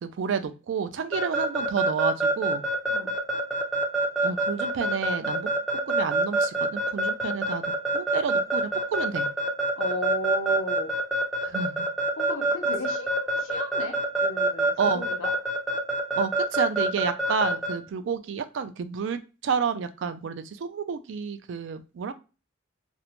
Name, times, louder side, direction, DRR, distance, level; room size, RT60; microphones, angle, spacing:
voice 1, 0.0-2.6 4.2-5.5 5.9-7.6 7.9-9.3 11.4-11.9 14.8-15.0 16.2-22.1, right 6 dB, 65° right, 10 dB, 0.3 m, -30 dB
Keyboard (musical) / Alarm, 1.1-17.7, right 2 dB, ahead, 0.4 m, -25 dB
voice 2, 9.8-10.9 12.2-15.3, left 2 dB, 80° left, 3 dB, 0.7 m, -35 dB
2.5 x 2.1 x 2.8 m, 0.32 s
head